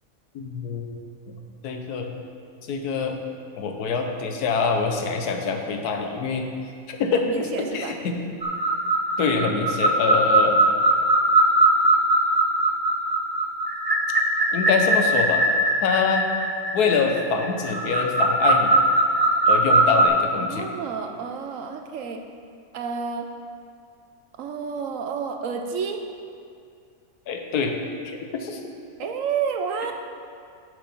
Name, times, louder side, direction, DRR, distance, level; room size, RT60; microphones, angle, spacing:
voice 1, 0.3-1.1 1.6-2.1 2.7-3.2 3.6-6.5 6.9-7.5 7.7-8.2 9.2-10.6 14.5-15.4 15.8-16.3 16.7-18.8 19.5-20.7 27.3-27.7 28.2-28.6, left 5 dB, 85° left, 4 dB, 1.4 m, -25 dB
voice 2, 7.3-7.9 20.4-22.2 22.7-23.3 24.4-26.0 29.0-29.9, right 6 dB, 65° right, 4 dB, 1.0 m, -30 dB
sound 1, 8.4-20.1, right 1 dB, 25° right, 0.5 m, -20 dB
8.0 x 6.8 x 5.4 m, 2.4 s
omnidirectional pair, 1.6 m